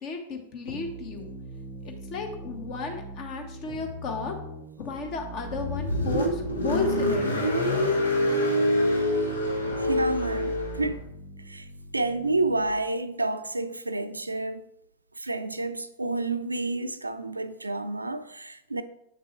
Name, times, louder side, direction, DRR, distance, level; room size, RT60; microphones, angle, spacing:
voice 1, 0.0-1.3 1.8-4.4 4.8-7.3, left 4 dB, 40° left, 1.2 m, -34 dB
sound 1, 0.7-12.7, right 3 dB, 60° left, 1.9 m, -41 dB
Car, 5.5-10.9, left 1 dB, 75° left, 1.1 m, -25 dB
voice 2, 9.8-11.0 11.4-11.7 11.9-14.6 15.2-18.8, right 2 dB, 80° right, 0.4 m, -29 dB
7.8 x 6.0 x 3.2 m
figure-of-eight pair, 90°, 0 cm